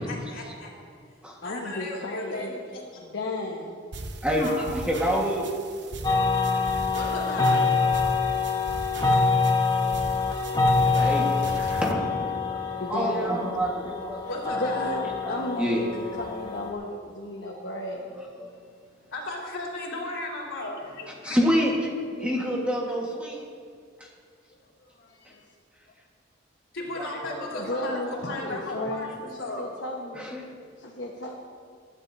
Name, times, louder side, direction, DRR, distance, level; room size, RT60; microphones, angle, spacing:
voice 1, 0.0-0.7 1.4-3.0 4.4-4.7 6.9-7.7 9.8-9.9 14.3-15.0 17.4-17.5 19.1-21.4 22.2-22.3 26.7-29.7, left 2 dB, 75° left, -4 dB, 3.4 m, -35 dB
voice 2, 1.4-2.6 3.0-3.8 9.6-10.8 11.4-11.8 12.8-13.5 14.2-18.1 22.1-22.8 25.0-25.5 27.5-29.1 29.4-30.3 30.8-31.4, left 1 dB, 60° left, -2 dB, 1.2 m, -35 dB
sound 1, 3.9-11.9, right 2 dB, 55° right, 1.0 m, -39 dB
voice 3, 4.2-5.5 10.9-11.4 11.8-12.6 12.9-14.2 15.6-15.8 18.2-18.5 21.2-21.7 22.2-23.4 27.0-27.1 27.5-27.7 30.1-30.7, equal, 5° right, -2 dB, 1.5 m, -27 dB
sound 2, 6.0-16.7, left 4 dB, 20° left, 1.1 m, -25 dB
21.5 x 11.5 x 2.7 m, 2.1 s
head